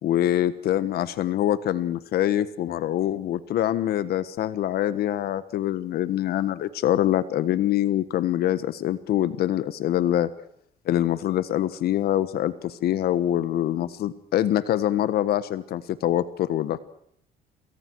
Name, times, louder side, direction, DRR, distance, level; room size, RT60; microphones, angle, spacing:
voice 1, 0.0-10.3 10.8-16.8, left 12 dB, 70° left, 14 dB, 1.4 m, -24 dB
28.0 x 22.5 x 4.7 m, 0.70 s
cardioid pair, 110°, 17 cm